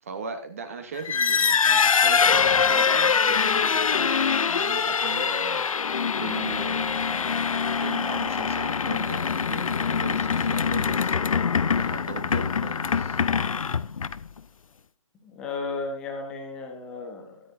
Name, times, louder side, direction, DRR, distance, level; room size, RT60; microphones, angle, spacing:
voice 1, 0.0-4.1 4.4-5.7 6.2-11.4 11.7-13.2, right 5 dB, 25° right, 8 dB, 1.2 m, -38 dB
sound 1, 1.0-14.4, left 6 dB, 70° left, 0.6 m, -24 dB
voice 2, 15.2-17.4, left 3 dB, 5° left, 2 dB, 1.0 m, -34 dB
13.5 x 10.5 x 2.7 m, 0.34 s
hypercardioid pair, 175°, 18 cm